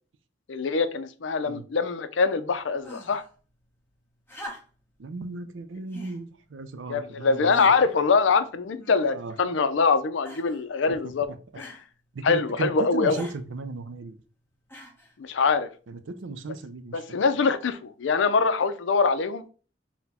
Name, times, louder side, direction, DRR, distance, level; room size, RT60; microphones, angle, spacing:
voice 1, 0.5-3.2 6.9-11.3 11.6-11.8 12.2-13.2 15.2-15.7 16.9-19.5, left 4 dB, 75° left, 0.5 m, -24 dB
sound 1, 2.8-3.3 4.3-4.9 5.9-6.2 6.9-7.0 7.5-7.9 8.8-9.3 10.2-10.6 11.6-11.8 13.1-13.4 14.7-15.1 16.2-16.3, equal, 10° left, 1.0 m, -43 dB
voice 2, 5.0-7.7 9.1-9.3 10.9-11.0 11.3-11.4 12.1-14.2 15.9-17.2, right 3 dB, 85° right, 0.5 m, -35 dB
4.2 x 2.2 x 4.1 m
head